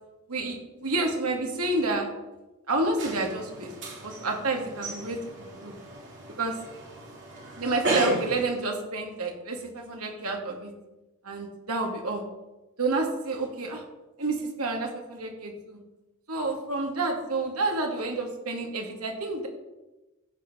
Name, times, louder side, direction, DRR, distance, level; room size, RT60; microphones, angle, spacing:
voice 1, 0.3-2.1 2.7-3.7 4.0-5.7 6.4-6.6 7.6-10.7 11.2-12.2 12.8-13.8 14.2-15.8 16.3-19.5, right 2 dB, 90° right, 2 dB, 2.5 m, -29 dB
sound 1, 3.0-8.3, right 2 dB, 55° right, 3.8 m, -33 dB
15.0 x 5.7 x 6.3 m, 1.0 s
head